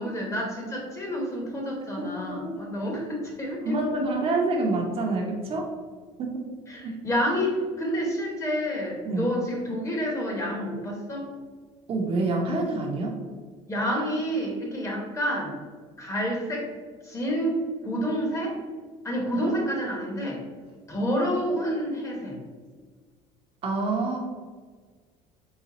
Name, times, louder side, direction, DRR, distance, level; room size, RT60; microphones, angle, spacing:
voice 1, 0.0-4.0 6.7-11.3 13.7-15.5 16.0-16.7 17.0-18.6 19.0-20.4 20.9-22.4, equal, 20° left, 0 dB, 0.9 m, -29 dB
voice 2, 2.0-2.6 2.9-3.1 3.6-5.7 6.2-6.5 6.8-6.9 9.0-9.3 11.9-13.2 19.4-19.5 23.6-24.2, right 3 dB, 40° right, 0 dB, 0.7 m, -27 dB
4.0 x 2.2 x 4.0 m, 1.5 s
cardioid pair, 125°, 15 cm